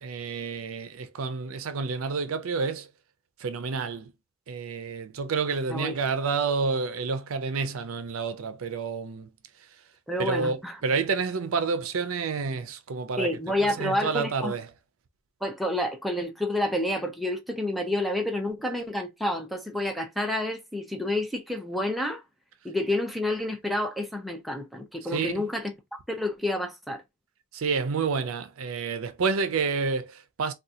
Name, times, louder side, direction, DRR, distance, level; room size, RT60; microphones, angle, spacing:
voice 1, 0.0-2.9 3.4-4.1 4.5-9.3 10.2-13.3 13.6-14.7 25.1-25.4 27.5-30.5, right 5 dB, 80° right, 0.5 m, -29 dB
voice 2, 10.1-10.8 13.2-14.5 15.4-22.2 22.6-27.0, left 1 dB, ahead, 0.5 m, -29 dB
3.7 x 2.3 x 2.7 m
head